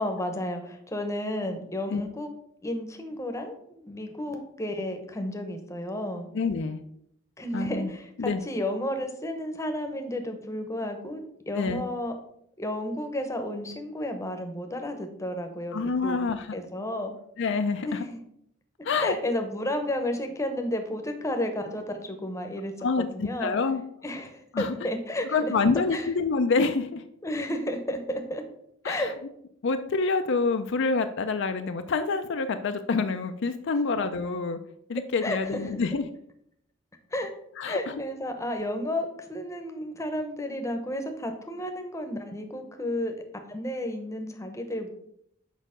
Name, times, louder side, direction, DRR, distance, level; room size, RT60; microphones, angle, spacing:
voice 1, 0.0-2.3 2.6-6.3 7.4-12.2 12.6-16.2 16.5-17.1 17.8-18.2 19.0-23.5 24.0-25.5 25.9-26.1 27.2-28.4 28.8-29.1 35.0-35.8 37.1-37.3 37.6-43.2 43.5-44.9, left 1 dB, 15° left, 5 dB, 0.8 m, -32 dB
voice 2, 6.3-6.8 7.5-7.9 8.2-8.4 11.6-11.8 15.7-16.5 17.4-18.0 18.8-19.1 22.8-23.8 24.5-24.7 25.3-27.0 28.8-29.1 29.6-34.6 34.9-36.1 37.6-38.0, left 4 dB, 60° left, 8 dB, 0.5 m, -27 dB
6.5 x 5.0 x 5.0 m, 0.72 s
head